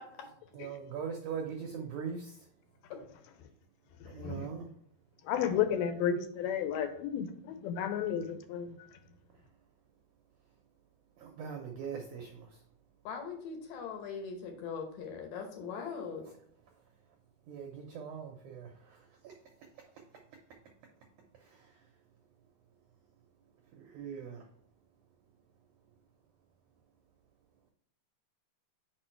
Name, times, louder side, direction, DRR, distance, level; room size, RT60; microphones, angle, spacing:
voice 1, 0.5-2.3 4.1-4.7 11.2-12.5 17.5-18.7 19.2-19.3 23.7-24.4, right 6 dB, 80° right, 1.7 m, -40 dB
voice 2, 5.3-8.7, left 8 dB, 90° left, 2.6 m, -32 dB
voice 3, 13.1-16.2, left 6 dB, 70° left, 2.4 m, -40 dB
5.4 x 4.4 x 4.4 m
omnidirectional pair, 4.3 m